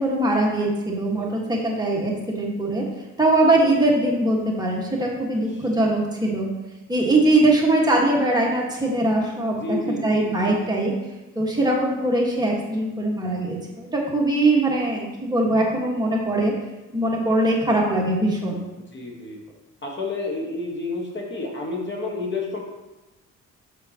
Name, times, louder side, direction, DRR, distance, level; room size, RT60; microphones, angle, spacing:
voice 1, 0.0-2.8 3.2-6.5 6.9-10.9 11.3-16.5 16.9-18.6, right 2 dB, 15° right, -3 dB, 1.5 m, -21 dB
voice 2, 9.5-10.6 18.9-19.4 19.8-22.6, left 2 dB, 40° left, 0 dB, 1.4 m, -30 dB
6.8 x 6.5 x 2.9 m, 1.0 s
cardioid pair, 90°, 30 cm